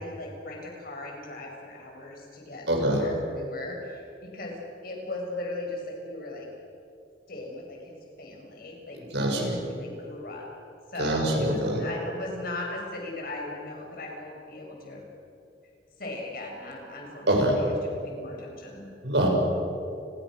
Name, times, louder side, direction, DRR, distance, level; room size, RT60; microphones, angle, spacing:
voice 1, 0.0-4.5 4.8-6.5 7.3-10.5 10.9-15.0 16.0-18.9, left 2 dB, 55° left, 0 dB, 6.6 m, -38 dB
voice 2, 2.7-3.0 9.1-9.6 11.0-11.8 17.3-17.6 19.0-19.3, right 1 dB, 80° right, 1 dB, 6.2 m, -24 dB
30.0 x 21.5 x 6.4 m, 2.6 s
head